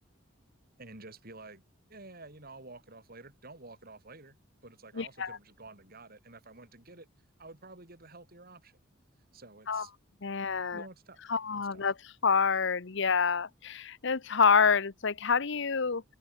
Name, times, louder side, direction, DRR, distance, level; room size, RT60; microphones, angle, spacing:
voice 1, 0.8-1.6 1.9-4.4 4.6-7.1 7.4-8.8 9.3-9.9 10.7-11.2 11.7-11.9, right 2 dB, 45° right, 3.5 m, -50 dB
voice 2, 5.0-5.4 9.7-9.9 10.2-10.8 11.3-11.9 12.2-16.0, left 5 dB, 60° left, 0.9 m, -27 dB
open air
head